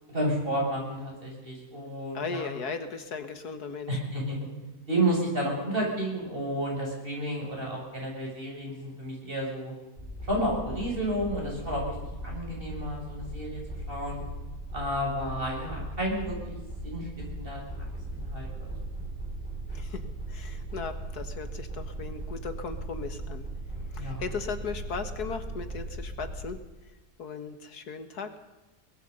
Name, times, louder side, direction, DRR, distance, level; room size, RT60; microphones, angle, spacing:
voice 1, 0.1-2.5 3.9-4.5 4.9-9.7 10.3-11.9 12.2-13.6 13.9-14.2 14.7-16.6 16.8-17.1 17.4-17.9 18.1-18.7 24.0-24.2, right 1 dB, 35° right, -2 dB, 7.9 m, -31 dB
voice 2, 2.1-3.9 19.7-20.0 20.3-23.4 23.9-26.6 27.2-28.4, left 5 dB, 80° left, 8 dB, 2.1 m, -37 dB
sound 1, 10.0-26.5, right 1 dB, 5° right, 6.3 m, -38 dB
23.5 x 20.0 x 5.5 m, 1.1 s
omnidirectional pair, 1.7 m